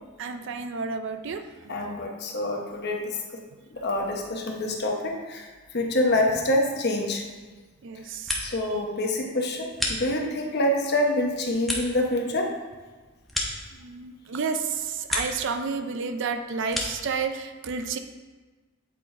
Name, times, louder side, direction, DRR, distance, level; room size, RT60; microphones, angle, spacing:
voice 1, 0.2-2.0 2.4-2.5 7.8-8.3 13.8-18.0, right 5 dB, 55° right, 8 dB, 0.4 m, -31 dB
voice 2, 1.7-3.2 3.7-5.5 5.7-7.2 8.4-12.5, left 1 dB, 50° left, 1 dB, 0.9 m, -26 dB
sound 1, 7.9-8.8 9.1-10.5 11.0-14.2 14.6-15.5 15.8-17.1, left 1 dB, ahead, 0.7 m, -34 dB
8.3 x 4.0 x 4.4 m, 1.3 s
head